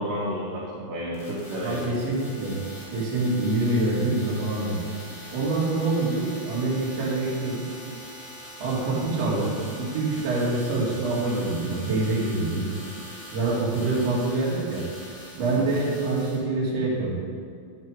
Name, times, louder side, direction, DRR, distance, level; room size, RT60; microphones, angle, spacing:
voice 1, 0.0-1.9 15.4-15.7, equal, 70° right, -7 dB, 2.1 m, -31 dB
sound 1, 1.1-16.4, equal, 60° left, 3.4 m, -43 dB
voice 2, 1.6-2.6 2.9-4.8 5.3-7.6 8.6-9.5 9.8-12.7 13.3-14.8 15.3-17.1, right 2 dB, 50° right, -7 dB, 2.2 m, -25 dB
10.5 x 4.8 x 4.7 m, 2.2 s
omnidirectional pair, 5.3 m